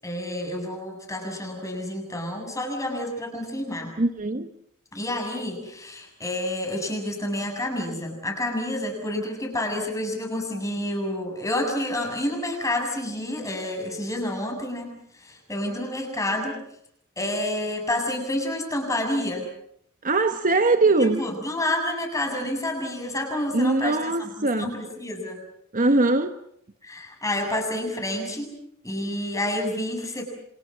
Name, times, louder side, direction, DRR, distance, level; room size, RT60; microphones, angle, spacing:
voice 1, 0.0-3.9 4.9-16.6 17.2-19.5 21.0-25.4 26.8-28.5 28.8-30.2, left 1 dB, 15° left, 7.4 m, -29 dB
voice 2, 4.0-4.5 20.0-21.2 23.5-24.7 25.7-26.4, right 2 dB, 35° right, 1.1 m, -21 dB
28.5 x 27.5 x 6.3 m
head